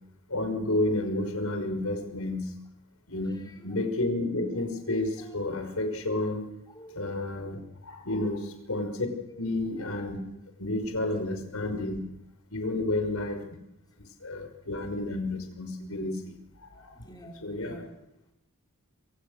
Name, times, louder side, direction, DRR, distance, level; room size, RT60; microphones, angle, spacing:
voice 1, 0.3-2.5 3.1-3.4 3.6-6.5 7.0-9.1 9.4-10.2 10.6-12.0 12.5-13.4 14.2-17.0 17.4-17.8, left 2 dB, 75° left, 5 dB, 5.7 m, -31 dB
voice 2, 1.8-2.1 3.1-3.9 5.2-5.4 6.7-7.0 8.2-8.4 9.2-9.5 12.7-12.9 16.9-17.9, right 1 dB, 20° left, 0 dB, 5.0 m, -50 dB
27.0 x 26.5 x 6.7 m, 0.86 s
head